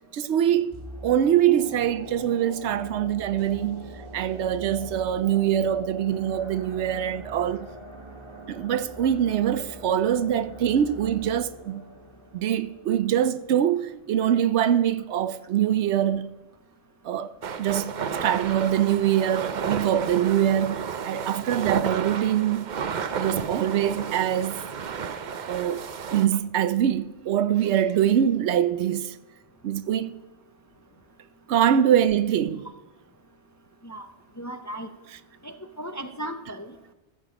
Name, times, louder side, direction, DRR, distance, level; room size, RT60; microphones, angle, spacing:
voice 1, 0.1-0.7 1.0-7.7 8.5-11.8 12.3-16.3 17.0-17.3 17.6-17.9 18.2-22.6 23.1-24.6 25.5-25.8 26.1-29.2 29.6-30.1 31.5-32.7 35.1-35.2 36.5-36.6, right 10 dB, 80° right, 0.9 m, -24 dB
sound 1, 0.7-13.8 14.1-14.2, right 1 dB, 25° right, 1.5 m, -43 dB
sound 2, 17.4-26.3, right 6 dB, 50° right, 0.7 m, -32 dB
voice 2, 34.4-34.9 35.4-36.9, right 1 dB, 25° left, 0.4 m, -36 dB
14.0 x 7.6 x 5.0 m
omnidirectional pair, 1.1 m